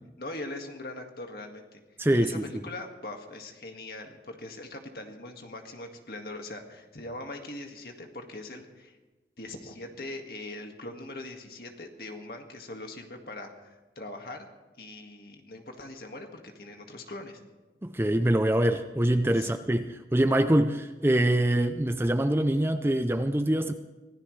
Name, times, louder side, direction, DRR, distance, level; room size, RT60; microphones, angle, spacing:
voice 1, 0.2-1.8 2.1-9.0 9.4-14.5 14.8-17.4 19.4-19.5, left 2 dB, 55° left, 3 dB, 1.9 m, -41 dB
voice 2, 2.0-2.4 17.8-23.7, right 1 dB, 15° right, 9 dB, 0.5 m, -24 dB
25.0 x 16.0 x 3.3 m, 1.2 s
head